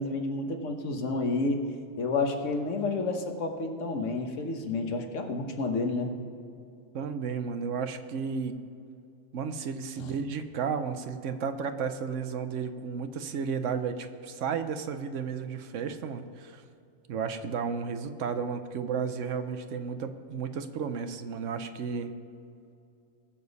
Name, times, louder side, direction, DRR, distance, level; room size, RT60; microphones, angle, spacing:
voice 1, 0.0-1.7 2.0-6.1 10.0-10.1, left 3 dB, 80° left, 4 dB, 1.5 m, -30 dB
voice 2, 6.9-8.6 9.3-16.6 17.1-22.1, right 6 dB, 80° right, 9 dB, 1.1 m, -33 dB
20.5 x 7.0 x 4.1 m, 2.6 s
omnidirectional pair, 1.3 m